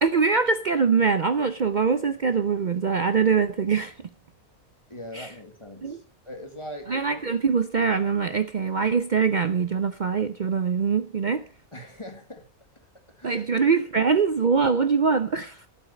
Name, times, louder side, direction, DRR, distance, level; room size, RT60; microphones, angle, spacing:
voice 1, 0.0-3.9 5.1-5.3 5.8-6.0 6.9-11.4 13.2-15.6, right 5 dB, 60° right, 0.4 m, -23 dB
voice 2, 4.9-7.0 11.7-12.5 13.2-13.4, left 1 dB, 20° left, 1.8 m, -41 dB
10.5 x 8.2 x 6.7 m
omnidirectional pair, 1.5 m